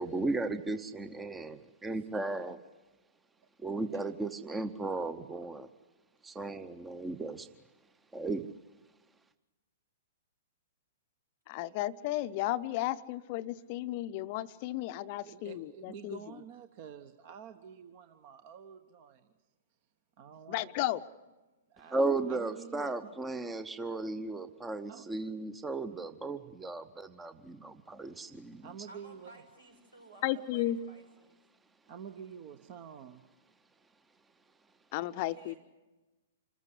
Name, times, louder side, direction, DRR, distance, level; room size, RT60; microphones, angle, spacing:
voice 1, 0.0-2.6 3.6-5.7 6.2-7.5 8.1-8.5 21.9-28.7, right 3 dB, 10° right, 12 dB, 0.8 m, -35 dB
voice 2, 1.9-2.5 28.9-31.4 35.1-35.6, right 2 dB, 80° right, 2 dB, 6.4 m, -56 dB
voice 3, 11.5-16.2 20.5-21.0 30.2-30.8 34.9-35.5, left 15 dB, 40° left, 13 dB, 0.7 m, -34 dB
voice 4, 15.2-19.3 20.2-20.7 21.7-23.2 24.9-25.1 28.6-29.3 31.9-33.2, right 8 dB, 40° right, 10 dB, 1.0 m, -48 dB
26.5 x 15.0 x 9.8 m, 1.2 s
figure-of-eight pair, 110°, 0 cm